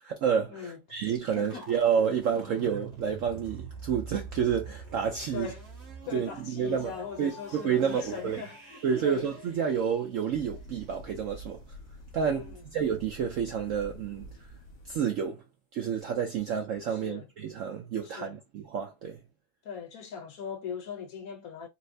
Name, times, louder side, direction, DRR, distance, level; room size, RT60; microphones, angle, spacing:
voice 1, 0.0-5.5 6.1-6.9 7.2-8.4 8.8-11.6 12.1-14.3 14.8-15.4 15.7-19.2, right 7 dB, 70° right, 0.7 m, -29 dB
sound 1, 1.0-10.8, right 3 dB, 35° right, 1.3 m, -46 dB
voice 2, 1.3-1.7 5.3-5.6 6.0-9.3 12.3-12.6 16.4-16.5 16.9-17.3 18.0-18.4 19.6-21.7, left 7 dB, 65° left, 1.0 m, -40 dB
sound 2, 10.3-15.0, equal, 85° left, 1.7 m, -47 dB
4.2 x 2.1 x 2.6 m
omnidirectional pair, 1.9 m